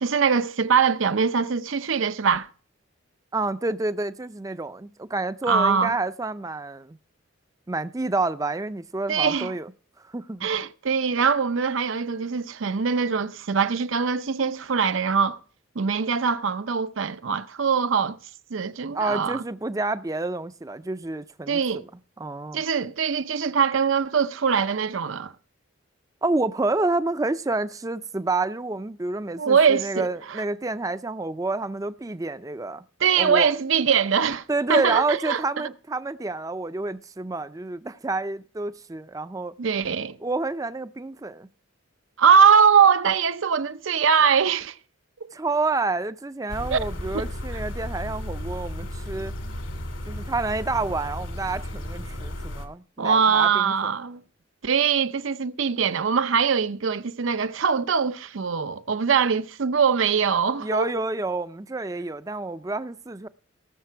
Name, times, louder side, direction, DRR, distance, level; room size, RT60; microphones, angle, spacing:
voice 1, 0.0-2.5 5.5-5.9 9.1-9.5 10.4-15.4 15.8-18.2 18.5-19.4 21.5-21.8 22.5-25.3 29.4-30.4 33.0-34.4 34.7-35.7 39.6-40.2 42.2-44.8 46.7-46.8 47.1-47.2 53.0-54.2 54.6-60.9, right 6 dB, 70° right, 0.6 m, -22 dB
voice 2, 3.3-7.0 7.7-9.7 10.1-10.5 18.9-21.8 22.2-22.6 26.2-32.8 33.1-33.5 34.5-39.5 40.2-41.5 45.3-49.3 50.1-53.9 60.6-63.3, right 3 dB, 15° right, 0.4 m, -29 dB
sound 1, 46.5-52.7, left 1 dB, 75° left, 2.3 m, -34 dB
18.5 x 6.7 x 4.5 m
head